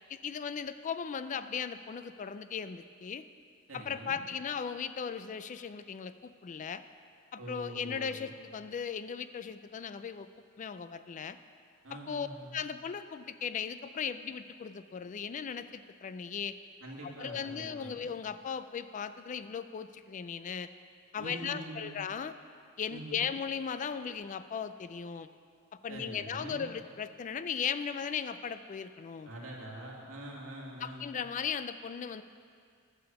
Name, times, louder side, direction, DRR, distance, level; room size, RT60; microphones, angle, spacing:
voice 1, 0.1-3.2 3.7-6.8 7.3-10.3 10.6-11.4 11.9-16.5 17.0-20.7 21.1-22.3 22.8-25.3 25.8-29.3 30.8-32.2, left 7 dB, 35° left, 12 dB, 0.3 m, -37 dB
voice 2, 3.7-4.2 7.4-8.3 11.8-12.6 16.8-18.0 21.2-22.0 22.9-23.2 25.9-26.7 29.3-31.2, right 1 dB, 70° right, -3 dB, 2.1 m, -44 dB
11.0 x 6.9 x 7.0 m, 2.2 s
head